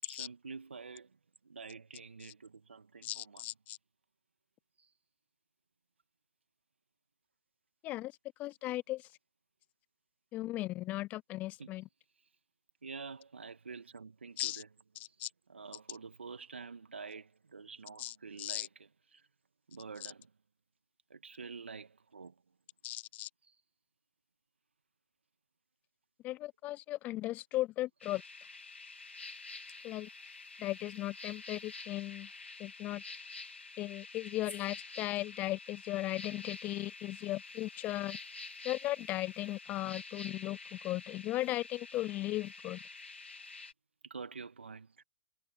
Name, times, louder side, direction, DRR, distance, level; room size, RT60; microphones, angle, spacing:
voice 1, 0.0-1.1 1.4-3.4 11.6-11.7 12.8-14.7 15.5-18.7 19.1-19.2 19.7-20.3 21.1-22.3 44.0-45.0, right 5 dB, 80° right, 2.2 m, -47 dB
voice 2, 3.0-3.8 7.8-8.1 8.4-9.1 10.3-11.9 14.4-14.6 15.0-15.3 18.0-18.7 20.0-20.1 22.8-23.3 26.2-28.2 29.8-30.1 30.6-32.3 32.6-33.0 33.8-38.2 38.6-42.8, left 16 dB, 25° left, 0.6 m, -37 dB
sound 1, 28.0-43.7, left 3 dB, 90° left, 3.0 m, -48 dB
figure-of-eight pair, 125°, 6 cm